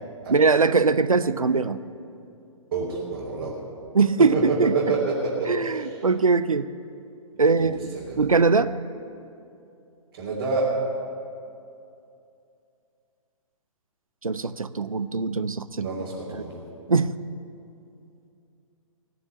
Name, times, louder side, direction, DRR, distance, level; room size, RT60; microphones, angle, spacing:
voice 1, 0.3-1.8 3.9-4.9 5.5-6.7 7.4-7.8 8.2-8.7 14.2-15.9 16.3-16.4 16.9-17.1, right 4 dB, 80° right, 14 dB, 0.6 m, -21 dB
voice 2, 2.7-3.5 4.2-6.0 7.6-7.7 8.1-8.3 10.1-10.7 15.8-16.6, right 3 dB, 45° right, -7 dB, 3.5 m, -28 dB
18.5 x 7.1 x 9.9 m, 2.6 s
figure-of-eight pair, 125°, 17 cm